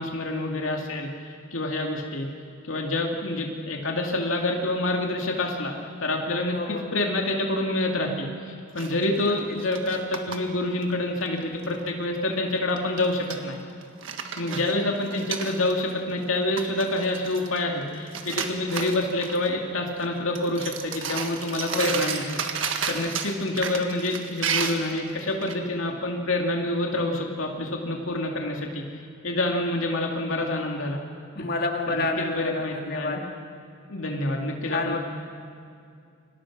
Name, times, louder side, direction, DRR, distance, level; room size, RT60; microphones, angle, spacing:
voice 1, 0.0-2.3 2.6-13.6 14.4-22.2 22.9-31.0 31.4-31.5 31.9-33.2 33.9-35.0, left 2 dB, 65° left, 1 dB, 2.6 m, -27 dB
voice 2, 6.5-7.0 9.2-9.3 14.5-15.0 21.7-22.0 31.3-33.2 34.7-35.0, left 2 dB, 45° left, 2 dB, 2.6 m, -30 dB
sound 1, 8.8-10.4 10.8-10.9 11.2-11.7 12.8-13.4 13.8-15.9 16.2-16.3 16.6-17.8 18.1-19.5 19.9-20.1 20.3-25.5, right 6 dB, 60° right, 1.9 m, -32 dB
30.0 x 25.5 x 6.2 m, 2.4 s
head